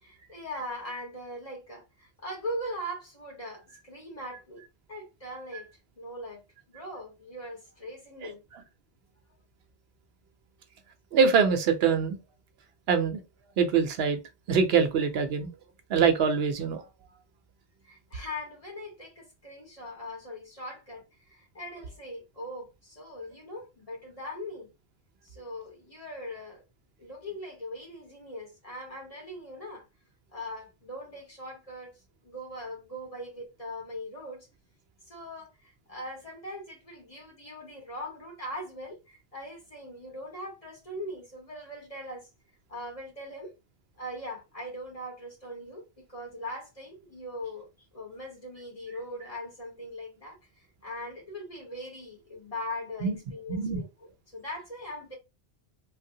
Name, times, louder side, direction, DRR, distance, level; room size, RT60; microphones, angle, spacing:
voice 1, 0.0-4.6 4.9-5.7 6.0-6.4 6.7-8.4 17.8-21.0 21.3-24.7 25.2-26.6 27.0-29.8 30.3-32.0 32.2-34.5 35.1-42.3 42.7-43.5 44.0-50.4 50.8-55.2, left 1 dB, 35° left, 1.4 m, -40 dB
voice 2, 11.1-12.2 12.9-13.2 13.6-14.2 14.5-15.5 15.9-16.8 53.0-53.2 53.5-53.8, right 6 dB, 80° right, 0.8 m, -24 dB
3.2 x 2.1 x 2.7 m
omnidirectional pair, 1.0 m